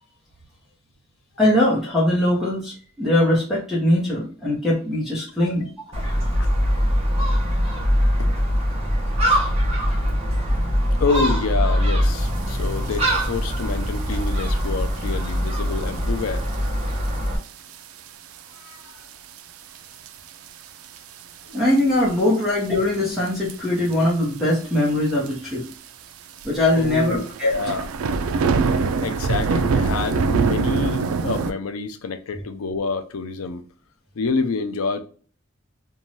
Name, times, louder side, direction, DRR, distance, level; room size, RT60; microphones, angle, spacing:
voice 1, 1.4-5.7 21.5-25.6 26.4-27.5, left 1 dB, ahead, 0.8 m, -21 dB
Gull seagull, 5.9-17.4, equal, 30° right, 0.8 m, -22 dB
voice 2, 6.0-6.5 8.2-8.3 11.0-16.5 18.6-19.0 26.7-27.9 29.0-33.6 34.2-35.0, left 4 dB, 85° left, 0.5 m, -27 dB
sound 1, 12.9-13.0 13.2-13.6 14.3-14.5 15.1-15.2 15.8-15.9 16.2-16.3 16.5-16.6 17.7-18.0 18.4-18.5 19.4-19.5 20.1-20.5 20.8-21.0 21.5-22.2 23.3-23.5 23.9-24.0 24.2-24.3 24.5-24.6 25.3-25.4 25.7-25.8 26.4-31.5, right 4 dB, 80° right, 0.4 m, -23 dB
2.7 x 2.2 x 3.1 m
head